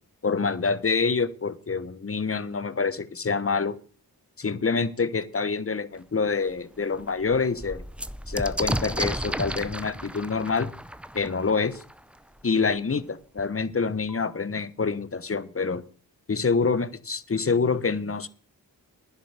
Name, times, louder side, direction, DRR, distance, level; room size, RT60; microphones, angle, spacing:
voice 1, 0.2-3.8 4.4-7.8 8.3-10.7 11.1-11.8 12.4-15.8 16.3-18.3, left 4 dB, 35° left, 15 dB, 1.1 m, -26 dB
sound 1, 5.9-6.0 6.5-6.6 6.9-12.4 13.4-13.5 13.7-14.3, right 1 dB, 5° right, 0.6 m, -34 dB
10.5 x 7.1 x 8.1 m, 0.41 s
cardioid pair, 65°, 39 cm